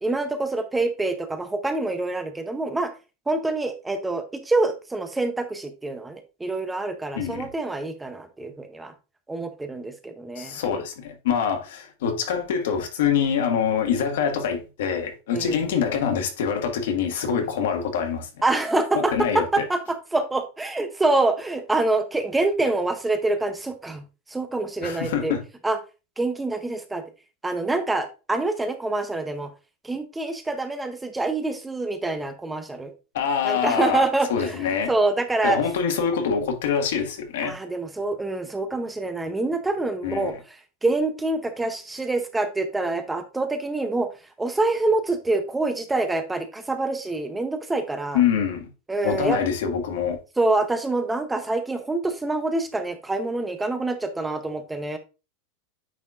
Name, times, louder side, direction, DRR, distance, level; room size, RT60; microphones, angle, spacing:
voice 1, 0.0-2.9 3.3-8.9 9.3-10.6 15.3-15.6 18.4-24.0 24.3-25.3 25.6-25.8 26.2-27.0 27.4-29.5 29.8-32.9 33.4-35.6 37.4-44.1 44.4-48.2 48.9-49.4 50.4-55.0, right 2 dB, 5° right, 0.7 m, -26 dB
voice 2, 7.1-7.5 10.4-18.3 18.9-19.6 24.8-25.4 33.1-34.0 34.3-34.9 35.4-37.5 40.0-40.4 48.1-48.7 49.0-50.2, left 7 dB, 80° left, 1.6 m, -25 dB
9.2 x 4.2 x 2.5 m
supercardioid pair, 160°, 0 cm